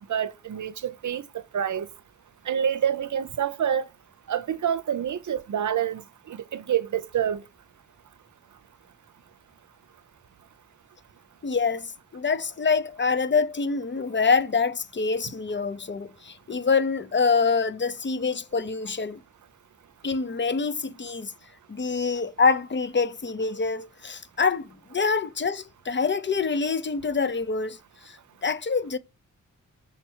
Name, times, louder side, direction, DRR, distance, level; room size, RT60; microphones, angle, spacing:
voice 1, 0.1-1.2 1.5-1.9 2.5-3.9 4.3-7.4, right 9 dB, 65° right, 0.6 m, -27 dB
voice 2, 11.4-19.2 20.0-21.3 21.7-27.8 28.1-29.0, left 4 dB, 35° left, 0.5 m, -26 dB
6.5 x 4.4 x 4.5 m
wide cardioid pair, 115°, 32 cm